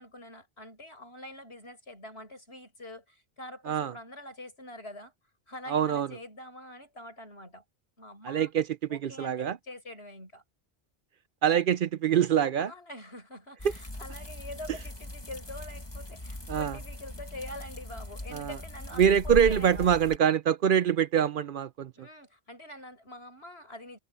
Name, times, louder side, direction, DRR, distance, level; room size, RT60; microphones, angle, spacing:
voice 1, 0.0-5.1 5.5-7.6 8.0-8.5 8.9-10.4 12.6-20.0 21.9-24.0, left 1 dB, 75° left, 8.4 m, -45 dB
voice 2, 5.7-6.1 8.3-8.6 8.9-9.6 11.4-12.7 16.5-16.8 18.3-18.6 19.0-21.9, right 8 dB, 60° right, 0.7 m, -24 dB
sound 1, 13.6-20.2, left 1 dB, 25° left, 1.8 m, -40 dB
omnidirectional pair, 1.1 m